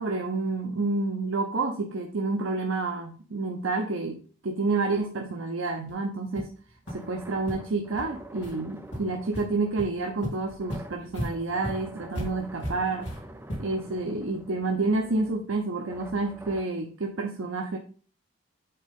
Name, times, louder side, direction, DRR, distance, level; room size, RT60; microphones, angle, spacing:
voice 1, 0.0-6.5 6.9-13.1 13.6-17.8, right 3 dB, 90° right, 2 dB, 0.7 m, -29 dB
sound 1, 5.9-6.0 6.4-6.5 6.9-7.0 7.4-7.5 8.0-8.1 8.4-8.6 8.9-9.4 9.8-9.9 10.2-13.9, equal, 65° left, 2.7 m, -36 dB
sound 2, 6.9-16.6, right 1 dB, 10° right, 0.5 m, -47 dB
7.8 x 3.7 x 3.6 m, 0.41 s
head